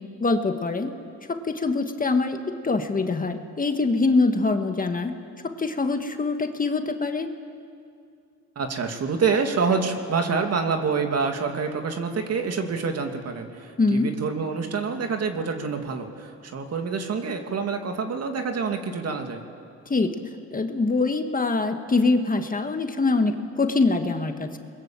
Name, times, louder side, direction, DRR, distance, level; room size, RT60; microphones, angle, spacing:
voice 1, 0.2-0.9 1.3-2.4 2.6-5.1 5.4-7.3 13.8-14.1 19.9-20.2 20.5-24.6, left 3 dB, 30° left, 6 dB, 1.7 m, -24 dB
voice 2, 8.6-19.4, right 5 dB, 55° right, 4 dB, 2.6 m, -27 dB
27.0 x 21.5 x 7.7 m, 2.4 s
cardioid pair, 90°, 30 cm